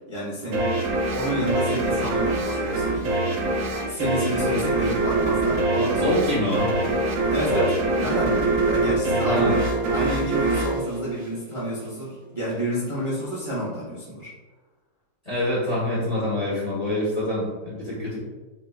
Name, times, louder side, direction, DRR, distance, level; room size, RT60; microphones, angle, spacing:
voice 1, 0.1-0.7 1.1-3.4 3.8-6.7 7.3-14.3, equal, 20° right, -8 dB, 1.0 m, -29 dB
sound 1, 0.5-11.8, right 2 dB, 65° right, 1.2 m, -24 dB
voice 2, 6.0-6.7 9.2-9.5 15.2-18.2, left 1 dB, 25° left, -8 dB, 1.2 m, -25 dB
6.0 x 2.9 x 2.3 m, 1.2 s
omnidirectional pair, 1.8 m